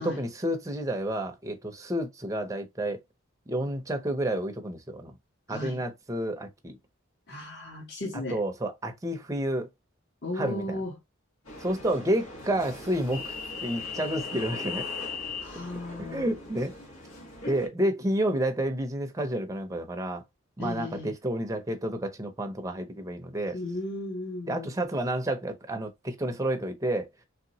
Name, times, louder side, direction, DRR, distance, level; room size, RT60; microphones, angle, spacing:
voice 1, 0.0-3.0 3.5-5.2 5.5-6.8 8.3-9.7 10.3-10.8 11.6-13.3 13.6-14.9 16.0-16.7 17.5-20.2 20.6-23.6 24.5-27.1, right 1 dB, 15° right, 0.6 m, -30 dB
voice 2, 5.5-5.8 7.3-8.4 10.2-11.0 15.4-16.3 20.6-21.1 23.5-24.9, left 1 dB, 55° left, 1.4 m, -35 dB
sound 1, 11.5-17.7, left 4 dB, 85° left, 1.5 m, -39 dB
3.1 x 2.9 x 2.7 m
head